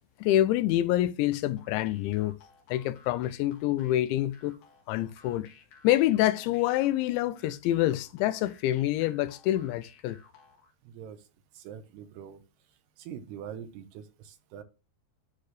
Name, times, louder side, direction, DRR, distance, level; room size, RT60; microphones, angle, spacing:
voice 1, 0.2-2.3 2.7-4.6 4.9-5.5 5.8-10.2, left 14 dB, 90° left, 3.0 m, -26 dB
sound 1, 1.6-10.7, left 5 dB, 60° left, 3.0 m, -58 dB
voice 2, 10.8-11.3 11.5-12.4 13.0-14.6, right 8 dB, 75° right, 2.7 m, -43 dB
11.5 x 4.3 x 3.2 m
omnidirectional pair, 5.2 m